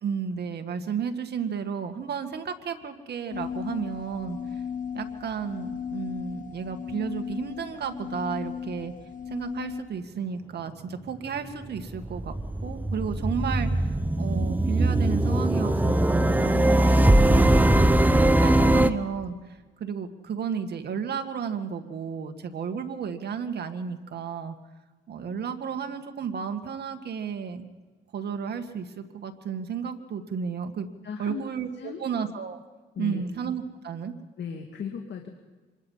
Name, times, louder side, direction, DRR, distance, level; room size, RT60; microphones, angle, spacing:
voice 1, 0.0-4.6 4.9-8.9 9.3-12.3 12.6-24.6 25.1-27.7 28.1-30.9 31.2-32.6 33.0-34.1, right 6 dB, 55° right, 6 dB, 2.0 m, -33 dB
sound 1, 3.3-9.8, left 7 dB, 40° left, 1.6 m, -36 dB
sound 2, 11.6-18.9, right 1 dB, 10° right, 1.0 m, -21 dB
voice 2, 31.0-31.4 31.8-32.0 33.0-33.3 34.4-35.3, left 7 dB, 60° left, 3 dB, 2.2 m, -36 dB
26.5 x 21.0 x 5.8 m, 1.3 s
cardioid pair, 90°, 20 cm